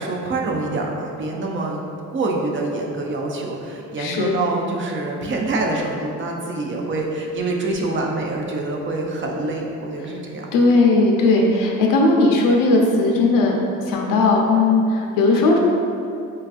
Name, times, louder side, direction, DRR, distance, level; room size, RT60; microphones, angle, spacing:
voice 1, 0.0-10.5, right 2 dB, 40° right, 0 dB, 0.5 m, -26 dB
voice 2, 4.0-4.4 10.5-13.6 13.9-15.6, left 3 dB, 80° left, 0 dB, 0.5 m, -17 dB
4.3 x 2.3 x 2.4 m, 2.6 s
cardioid pair, 85°, 32 cm